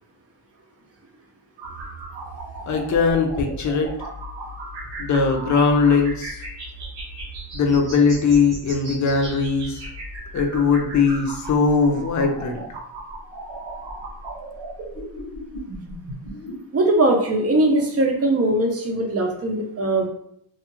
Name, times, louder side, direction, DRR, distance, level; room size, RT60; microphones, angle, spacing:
sound 1, 1.6-16.6, right 1 dB, 85° right, 1.1 m, -36 dB
voice 1, 2.7-3.9 5.0-6.5 7.5-9.9 10.3-12.6, left 5 dB, 40° left, 3 dB, 0.6 m, -20 dB
voice 2, 16.7-20.1, right 1 dB, 35° right, 2 dB, 0.6 m, -20 dB
2.6 x 2.4 x 2.9 m, 0.71 s
cardioid pair, 105°, 43 cm